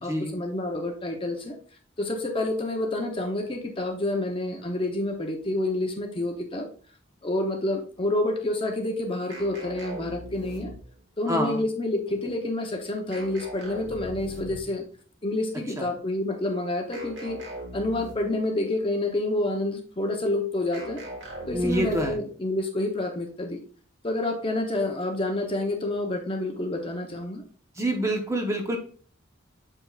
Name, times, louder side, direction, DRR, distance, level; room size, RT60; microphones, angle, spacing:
voice 1, 0.0-1.6 2.0-6.7 7.2-10.7 11.2-14.8 15.2-17.4 17.7-21.0 21.5-23.6 24.0-27.4, left 2 dB, 25° left, 3 dB, 0.8 m, -28 dB
sound 1, 9.3-11.1 13.1-14.8 16.9-18.5 20.7-22.3, right 1 dB, 65° right, 1.8 m, -40 dB
voice 2, 11.3-11.6 15.8-15.9 21.5-22.2 27.8-28.8, right 1 dB, 15° right, 2 dB, 0.9 m, -26 dB
7.6 x 5.1 x 2.4 m, 0.43 s
head